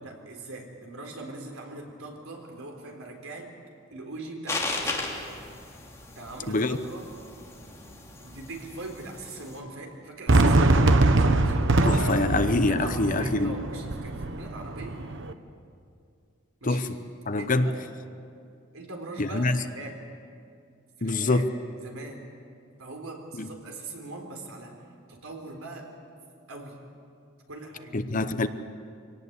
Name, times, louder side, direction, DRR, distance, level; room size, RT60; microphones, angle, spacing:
voice 1, 0.0-3.5 3.9-5.0 6.2-7.1 8.2-11.5 12.2-15.0 16.6-16.9 17.4-17.8 18.7-20.0 21.0-21.4 21.8-22.2 22.8-24.8 25.1-25.9 26.5-26.8 27.5-28.0, right 2 dB, 80° right, 2 dB, 4.1 m, -41 dB
sound 1, 4.5-9.6, left 2 dB, 15° left, 2.8 m, -36 dB
voice 2, 6.5-6.8 11.8-13.6 16.6-16.9 17.3-17.7 19.2-19.6 21.0-21.5 23.4-23.5 27.9-28.5, left 2 dB, 40° left, 10 dB, 0.9 m, -25 dB
Fireworks, 10.3-15.3, right 2 dB, 60° right, 1.1 m, -23 dB
24.5 x 18.0 x 8.3 m, 2.4 s
head